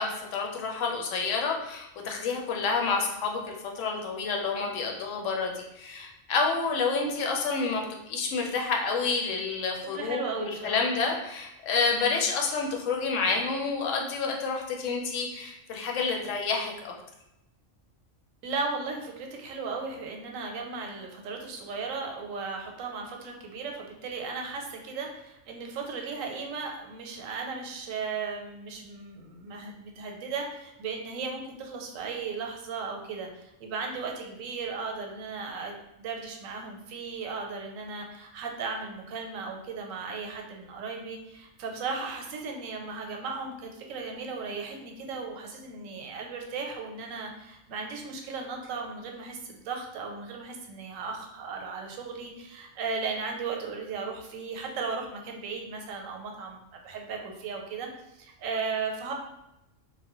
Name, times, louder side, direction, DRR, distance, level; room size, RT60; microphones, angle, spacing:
voice 1, 0.0-16.9, left 4 dB, 75° left, 1 dB, 0.9 m, -29 dB
voice 2, 9.9-10.8 11.9-12.2 18.4-35.7 36.0-59.1, right 4 dB, 90° right, 2 dB, 1.0 m, -36 dB
3.0 x 2.1 x 2.9 m, 0.87 s
omnidirectional pair, 1.3 m